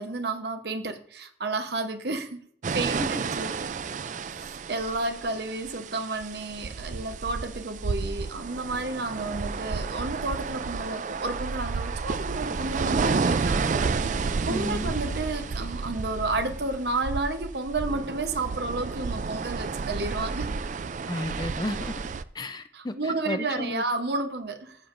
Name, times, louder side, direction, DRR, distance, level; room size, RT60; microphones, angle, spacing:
voice 1, 0.0-2.4 2.7-3.7 4.3-13.8 14.1-20.5 22.7-24.8, right 2 dB, 60° right, 0.9 m, -31 dB
sound 1, 2.6-22.2, right 4 dB, 40° right, 0.3 m, -31 dB
voice 2, 2.8-3.2 14.5-14.9 21.1-21.9 22.3-23.8, left 1 dB, 20° left, 0.5 m, -33 dB
14.0 x 7.2 x 2.5 m
head